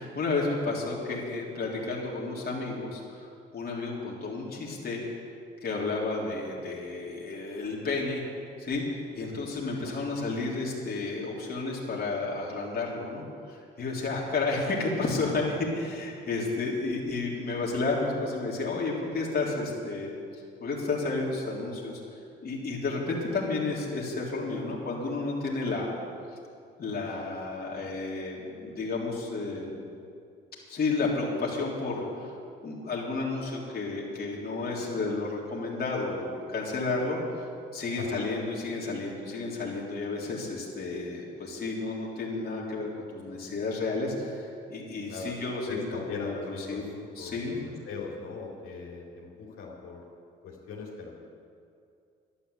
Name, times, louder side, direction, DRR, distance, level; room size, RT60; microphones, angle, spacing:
voice 1, 0.0-3.3 3.5-5.0 5.6-8.2 8.6-8.8 9.1-25.9 26.8-29.9 30.7-32.4 32.6-45.8 46.1-46.3 46.7-47.6, left 3 dB, 45° left, -4 dB, 3.7 m, -32 dB
voice 2, 38.0-38.3 39.5-39.6 45.1-45.3 45.7-50.1 50.4-51.2, left 4 dB, 80° left, -4 dB, 3.5 m, -40 dB
11.5 x 11.5 x 8.3 m, 2.4 s
supercardioid pair, 75°, 21 cm